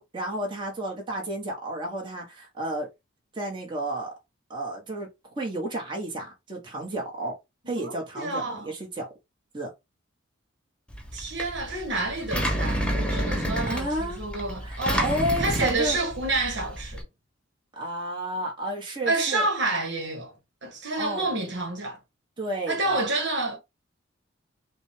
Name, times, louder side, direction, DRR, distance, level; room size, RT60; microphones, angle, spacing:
voice 1, 0.0-2.9 3.3-4.1 4.5-5.1 5.3-7.4 7.7-9.1 9.5-9.7 13.6-14.2 14.6-16.0 17.8-19.5 21.0-21.3 22.4-23.0, right 1 dB, 25° right, 1.4 m, -31 dB
voice 2, 7.6-8.7 11.1-17.0 19.0-20.3 20.6-22.0 22.7-23.6, right 2 dB, 60° right, 1.4 m, -29 dB
Engine, 10.9-17.0, equal, 5° left, 0.8 m, -30 dB
5.9 x 2.4 x 3.3 m
head